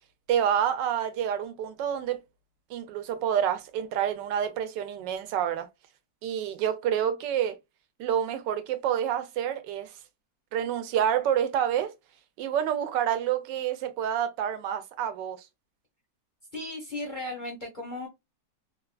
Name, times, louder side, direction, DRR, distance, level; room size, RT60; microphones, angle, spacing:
voice 1, 0.3-2.2 2.7-5.7 6.2-7.6 8.0-9.9 10.5-11.9 12.4-15.5, right 9 dB, 80° right, 1.2 m, -28 dB
voice 2, 16.5-18.1, left 2 dB, 40° left, 0.7 m, -36 dB
3.5 x 2.3 x 2.2 m
omnidirectional pair, 2.0 m